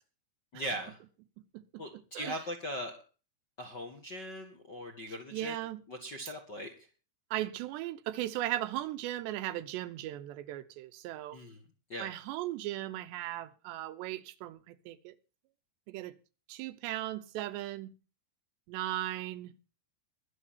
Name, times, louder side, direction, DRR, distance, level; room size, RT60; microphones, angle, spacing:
voice 1, 0.5-1.0 1.8-3.0 3.6-5.6 5.9-6.7 11.3-11.6 11.9-12.1, equal, 40° left, 1.5 m, -40 dB
voice 2, 1.5-2.4 5.3-5.8 7.3-11.4 12.0-15.2 15.9-16.1 16.5-17.9 18.7-19.5, right 14 dB, 80° right, 3.1 m, -37 dB
22.5 x 7.6 x 4.2 m
omnidirectional pair, 5.0 m